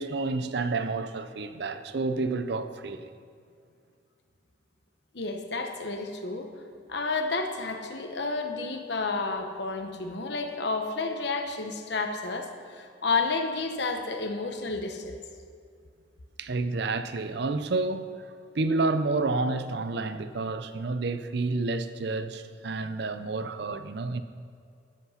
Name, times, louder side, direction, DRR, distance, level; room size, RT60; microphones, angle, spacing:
voice 1, 0.0-3.1 16.4-18.2 18.5-24.2, right 3 dB, 60° right, 0.6 m, -29 dB
voice 2, 5.1-6.5 6.9-15.2, left 3 dB, 60° left, 1.1 m, -31 dB
13.0 x 8.3 x 5.7 m
head